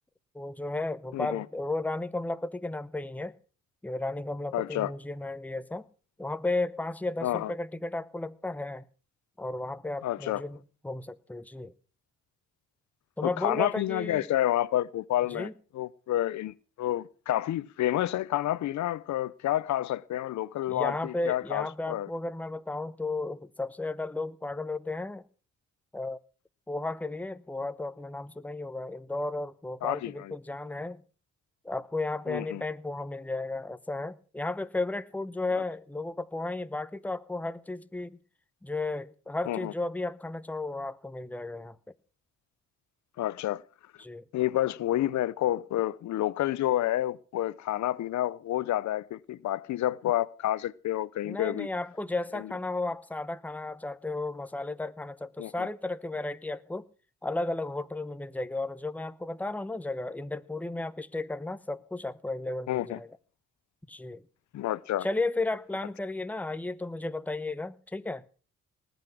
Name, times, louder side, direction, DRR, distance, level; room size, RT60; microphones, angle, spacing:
voice 1, 0.3-3.3 3.8-5.8 6.2-8.8 9.4-11.7 13.2-14.3 15.3-15.5 20.7-25.2 25.9-26.2 26.7-31.0 31.6-38.2 38.6-41.8 44.0-44.2 51.2-56.9 57.2-63.1 63.9-64.2 65.0-68.2, left 2 dB, 5° left, 0.9 m, -34 dB
voice 2, 1.1-1.4 4.5-4.9 7.2-7.5 10.0-10.4 13.2-15.5 15.7-22.1 29.8-30.3 32.3-32.6 35.5-35.6 39.5-39.7 43.2-43.6 44.3-51.7 52.3-52.4 55.4-55.7 62.7-63.0 64.5-65.1, left 13 dB, 70° left, 0.7 m, -29 dB
19.5 x 8.2 x 6.2 m
cardioid pair, 90°, 30 cm